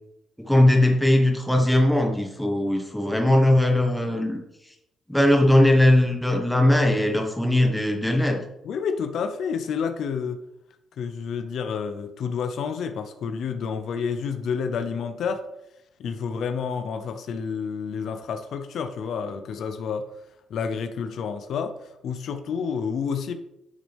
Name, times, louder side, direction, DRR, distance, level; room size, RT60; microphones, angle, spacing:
voice 1, 0.4-4.4 5.1-8.4, left 1 dB, 5° left, 2 dB, 1.5 m, -19 dB
voice 2, 8.6-10.4 11.0-15.4 16.0-20.1 20.5-21.8 22.0-23.3, left 6 dB, 70° left, 8 dB, 0.8 m, -29 dB
10.5 x 6.5 x 3.5 m, 0.85 s
cardioid pair, 90°, 0 cm